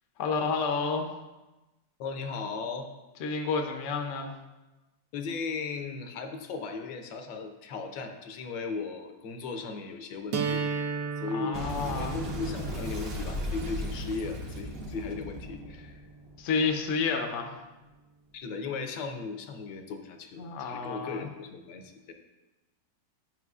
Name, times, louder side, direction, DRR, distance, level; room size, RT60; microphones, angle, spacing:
voice 1, 0.2-1.1 3.2-4.3 11.3-12.2 16.4-17.6 20.4-21.3, left 5 dB, 65° left, 3 dB, 0.8 m, -30 dB
voice 2, 2.0-2.9 5.1-10.6 11.2-16.0 18.3-22.1, left 4 dB, 80° left, 5 dB, 1.4 m, -37 dB
sound 1, 10.3-16.3, right 5 dB, 75° right, 1.3 m, -36 dB
Boom, 11.5-16.7, equal, 45° right, 0.8 m, -36 dB
9.0 x 5.6 x 2.4 m, 1.1 s
omnidirectional pair, 2.0 m